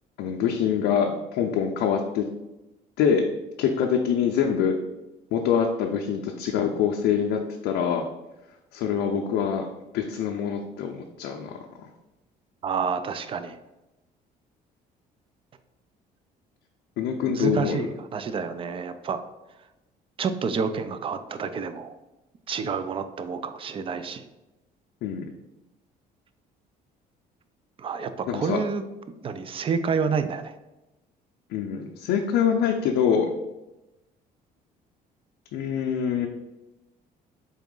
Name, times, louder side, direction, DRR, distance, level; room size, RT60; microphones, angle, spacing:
voice 1, 0.2-2.3 3.0-3.2 3.6-4.8 5.3-8.0 8.7-9.7 9.9-11.9 17.0-17.9 25.0-25.3 28.3-28.6 31.5-33.3 35.5-36.3, left 7 dB, 85° left, 1 dB, 0.5 m, -25 dB
voice 2, 12.6-13.6 17.2-19.2 20.2-21.9 22.5-24.2 27.8-28.8 29.2-30.5, right 5 dB, 35° right, 10 dB, 0.4 m, -29 dB
4.1 x 3.5 x 3.7 m, 0.98 s
cardioid pair, 110°, 17 cm